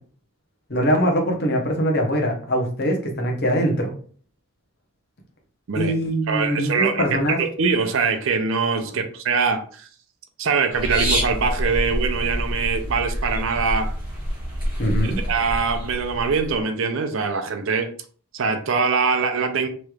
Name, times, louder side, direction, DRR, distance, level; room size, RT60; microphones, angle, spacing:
voice 1, 0.7-3.9 5.7-7.4 9.0-9.1 14.8-15.2, equal, 50° left, 0.8 m, -22 dB
voice 2, 6.3-7.0 7.4-9.9 10.4-14.0 15.0-17.9 18.3-19.7, right 5 dB, 60° right, 0.5 m, -23 dB
sound 1, 10.7-16.6, equal, 20° right, 1.4 m, -27 dB
3.2 x 3.0 x 2.3 m
head